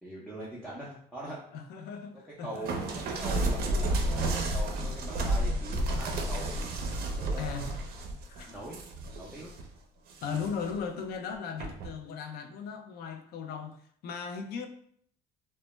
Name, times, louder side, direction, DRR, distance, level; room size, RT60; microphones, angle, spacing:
voice 1, 0.0-1.4 2.4-6.5 7.1-7.8 8.5-8.8 9.1-9.5, right 1 dB, 5° left, 0.5 m, -42 dB
voice 2, 1.5-2.7 7.4-7.7 8.3-8.5 10.2-13.8 14.0-14.7, left 6 dB, 70° left, 0.4 m, -37 dB
sound 1, 2.7-9.6 10.1-10.7 11.6-11.9, right 1 dB, 65° right, 0.5 m, -31 dB
2.1 x 2.1 x 3.0 m
cardioid pair, 110°, 17 cm